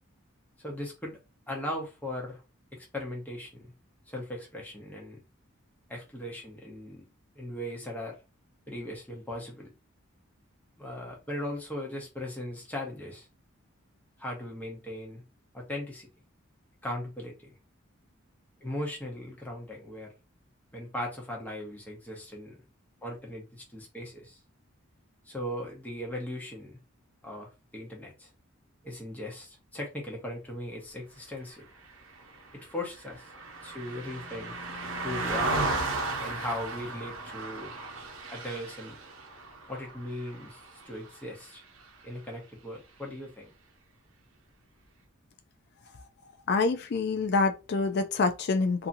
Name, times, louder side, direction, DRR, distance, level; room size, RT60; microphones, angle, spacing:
voice 1, 0.6-1.2 1.5-2.4 2.7-3.5 4.1-5.2 5.9-7.0 7.4-8.2 8.7-9.7 10.8-13.3 14.2-15.2 15.5-16.1 16.8-17.5 18.6-20.1 20.7-22.5 23.0-24.4 25.3-26.8 27.2-28.3 28.8-31.6 32.6-33.3 33.6-34.5 35.0-35.6 36.2-37.7 38.3-39.0 39.7-40.6 40.9-41.6 42.0-43.5, left 1 dB, 10° left, 0.8 m, -38 dB
Car passing by, 31.9-41.4 41.8-42.0, right 2 dB, 65° right, 0.7 m, -35 dB
voice 2, 46.5-48.9, left 3 dB, 50° left, 0.4 m, -26 dB
2.8 x 2.5 x 2.6 m
head